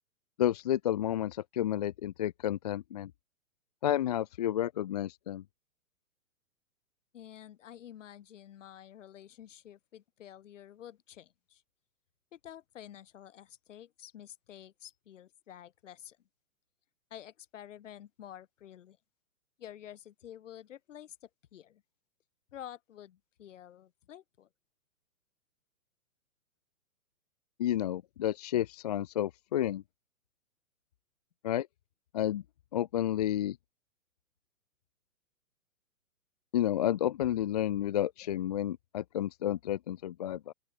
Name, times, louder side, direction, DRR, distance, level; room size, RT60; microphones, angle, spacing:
voice 1, 0.4-3.1 3.8-5.4 27.6-29.8 31.4-31.7 32.1-32.4 32.7-33.6 36.5-40.5, left 12 dB, 30° left, 0.5 m, -31 dB
voice 2, 7.1-11.6 12.3-16.2 17.1-19.0 19.6-21.8 22.5-24.5, left 11 dB, 60° left, 5.9 m, -50 dB
open air
hypercardioid pair, 150°, 43 cm